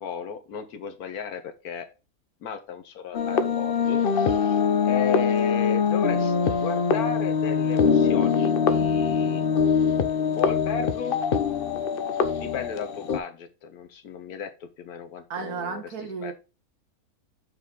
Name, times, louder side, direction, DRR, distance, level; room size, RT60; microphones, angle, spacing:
voice 1, 0.0-1.9 2.4-9.4 9.8-10.0 10.4-11.2 12.4-15.8 16.2-16.3, left 7 dB, 80° left, 1.3 m, -35 dB
sound 1, 3.1-13.2, left 6 dB, 50° left, 0.7 m, -23 dB
voice 2, 15.3-16.3, right 5 dB, 90° right, 1.9 m, -33 dB
6.9 x 4.9 x 3.7 m
omnidirectional pair, 1.6 m